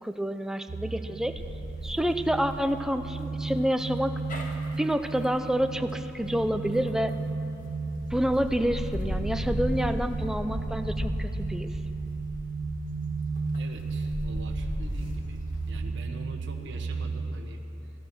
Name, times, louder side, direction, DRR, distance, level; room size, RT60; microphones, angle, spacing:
voice 1, 0.0-1.4 1.8-4.1 4.8-7.2 8.1-11.7, equal, 5° right, 8 dB, 0.5 m, -28 dB
sound 1, 0.7-17.4, right 4 dB, 90° right, 0.7 m, -34 dB
sound 2, 1.4-7.4 7.9-15.8, equal, 45° left, 1.7 m, -36 dB
voice 2, 13.5-15.4 15.7-17.9, right 2 dB, 65° right, 2 dB, 1.2 m, -45 dB
15.0 x 13.5 x 6.1 m, 2.9 s
head